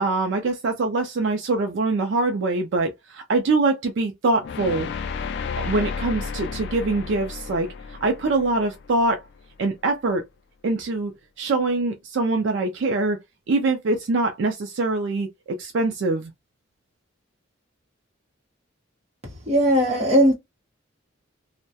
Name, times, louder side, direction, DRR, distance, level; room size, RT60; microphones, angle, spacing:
voice 1, 0.0-4.9 5.6-9.2 9.6-10.2 10.6-11.1 11.4-13.2 13.5-16.3, right 3 dB, 65° right, 0.4 m, -24 dB
sound 1, 4.4-9.5, left 5 dB, 55° left, 0.3 m, -33 dB
voice 2, 19.5-20.3, equal, 30° right, 0.9 m, -18 dB
2.2 x 2.1 x 2.7 m
head